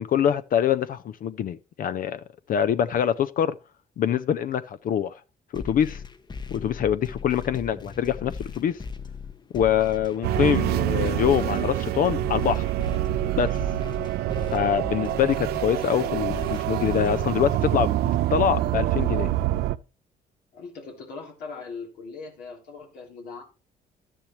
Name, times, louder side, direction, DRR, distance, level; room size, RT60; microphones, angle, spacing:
voice 1, 0.0-2.2 2.5-3.6 4.0-5.1 5.5-6.0 6.5-8.8 9.5-12.7 13.4-13.6 14.5-19.3, left 9 dB, 60° left, 0.5 m, -24 dB
sound 1, 5.5-17.5, left 5 dB, 25° left, 0.9 m, -38 dB
sound 2, 10.2-19.8, right 14 dB, 80° right, 0.5 m, -26 dB
voice 2, 20.5-23.4, left 4 dB, 90° left, 3.4 m, -40 dB
11.5 x 10.0 x 3.1 m
cardioid pair, 85°, 16 cm